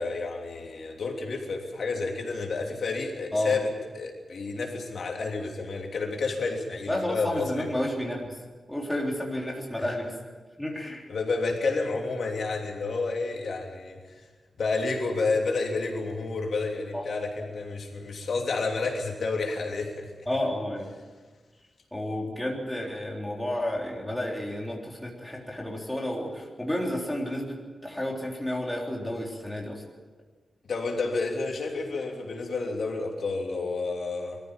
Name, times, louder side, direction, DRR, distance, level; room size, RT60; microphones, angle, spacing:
voice 1, 0.0-7.7 9.8-9.9 11.1-14.2 14.6-20.1 30.6-34.4, left 3 dB, 70° left, 1 dB, 3.1 m, -30 dB
voice 2, 6.9-8.3 8.7-10.1 10.6-11.1 16.9-17.1 20.3-20.9 21.9-29.8, left 1 dB, 5° left, -2 dB, 3.6 m, -31 dB
22.5 x 14.5 x 9.1 m, 1.4 s
wide cardioid pair, 175°, 0 cm